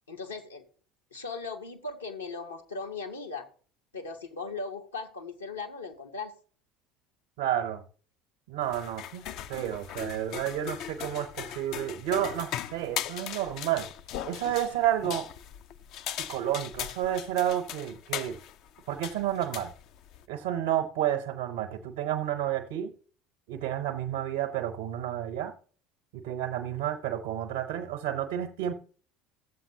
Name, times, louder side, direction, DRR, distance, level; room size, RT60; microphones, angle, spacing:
voice 1, 0.1-0.6 1.1-3.5 3.9-6.3, left 4 dB, 85° left, 1.2 m, -38 dB
voice 2, 7.4-7.8 8.5-13.9 14.2-15.3 16.2-18.4 18.9-19.7 20.3-22.9 23.5-25.5 26.1-28.8, right 11 dB, 65° right, 0.9 m, -31 dB
sound 1, 8.6-20.3, left 10 dB, 50° left, 0.4 m, -39 dB
16.0 x 7.4 x 2.8 m
figure-of-eight pair, 65°, 0 cm